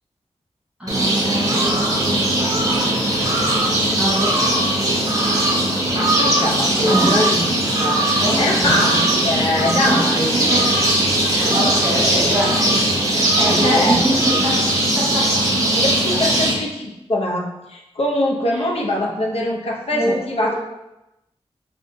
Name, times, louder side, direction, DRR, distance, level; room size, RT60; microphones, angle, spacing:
voice 1, 0.8-5.0 6.8-7.3 8.2-9.0 9.8-10.0 10.3-10.7 11.2-14.7 14.9-16.2 18.5-18.7 19.9-20.6, right 1 dB, 10° right, -9 dB, 1.4 m, -25 dB
sound 1, 0.9-16.5, right 1 dB, 30° right, 0.8 m, -19 dB
voice 2, 5.9-7.4 7.7-8.0 8.4-10.4 13.5-14.0 15.7-20.5, left 1 dB, 65° left, -1 dB, 0.6 m, -22 dB
4.9 x 2.2 x 2.6 m, 0.91 s
wide cardioid pair, 105°, 11 cm